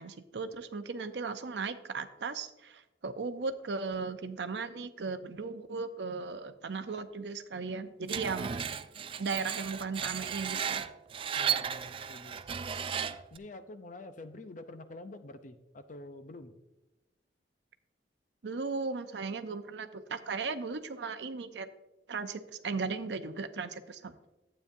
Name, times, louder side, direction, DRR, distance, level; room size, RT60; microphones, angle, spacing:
voice 1, 0.0-8.6 9.2-10.8 18.4-21.7 22.1-24.1, right 4 dB, 75° right, 10 dB, 0.6 m, -37 dB
Screech, 8.1-13.4, right 7 dB, 30° right, 0.3 m, -35 dB
voice 2, 11.4-12.5 13.3-16.6, left 2 dB, 45° left, 10 dB, 0.6 m, -47 dB
12.0 x 8.6 x 2.7 m, 1.0 s
head